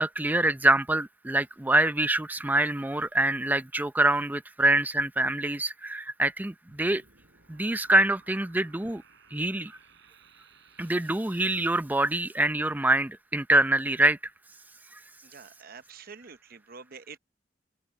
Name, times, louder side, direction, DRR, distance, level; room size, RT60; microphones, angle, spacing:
voice 1, 0.0-7.0 7.5-9.0 9.3-9.7 10.8-14.2, right 2 dB, 10° right, 0.5 m, -25 dB
sound 1, 6.7-11.7, right 5 dB, 70° right, 4.2 m, -59 dB
voice 2, 15.2-17.2, right 5 dB, 50° right, 0.9 m, -47 dB
open air
head